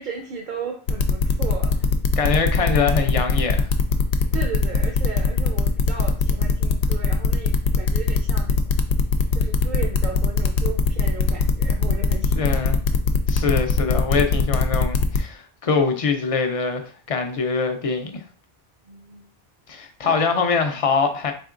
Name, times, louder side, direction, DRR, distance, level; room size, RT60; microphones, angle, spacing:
voice 1, 0.0-1.9 4.3-8.8 9.3-12.7 18.9-19.3 20.0-20.2, right 5 dB, 55° right, 0.7 m, -35 dB
sound 1, 0.9-15.2, left 5 dB, 90° left, 0.8 m, -20 dB
voice 2, 2.2-3.7 12.4-12.8 13.3-18.2 19.7-21.3, left 5 dB, 45° left, 0.5 m, -23 dB
4.2 x 3.6 x 2.5 m
omnidirectional pair, 1.1 m